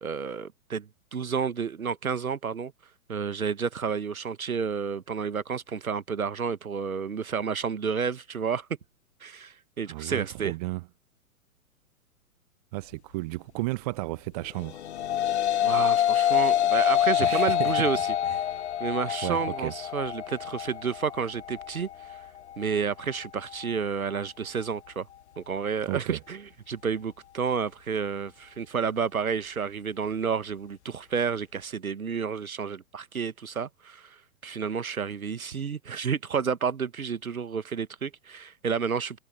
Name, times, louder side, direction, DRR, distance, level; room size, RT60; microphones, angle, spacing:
voice 1, 0.0-2.7 3.1-8.7 9.2-10.5 15.6-18.0 18.8-22.1 22.6-25.1 25.4-26.4 26.7-39.2, right 6 dB, 70° right, 1.4 m, -30 dB
voice 2, 9.9-10.9 12.7-14.8 17.2-17.9 18.2-18.4 19.2-19.7 25.9-26.2, right 21 dB, 25° right, 0.9 m, -33 dB
sound 1, 14.6-23.8, left 11 dB, 50° left, 0.6 m, -26 dB
figure-of-eight pair, 115°, 44 cm